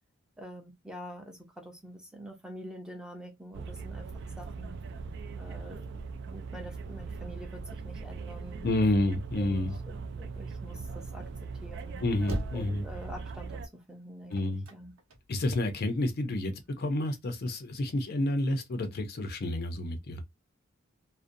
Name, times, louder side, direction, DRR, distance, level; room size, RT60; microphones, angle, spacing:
voice 1, 0.4-4.1 4.4-4.8 5.4-5.8 6.3-9.6 10.2-11.2 11.6-12.0 12.5-14.9, equal, 5° right, 0.5 m, -46 dB
sound 1, 3.5-13.7, right 4 dB, 55° right, 0.4 m, -40 dB
voice 2, 8.6-9.8 12.0-12.9 14.3-14.7 15.3-20.2, left 1 dB, 50° left, 0.5 m, -29 dB
sound 2, 12.1-15.8 16.3-17.3, right 1 dB, 75° right, 0.9 m, -41 dB
2.5 x 2.1 x 2.5 m
head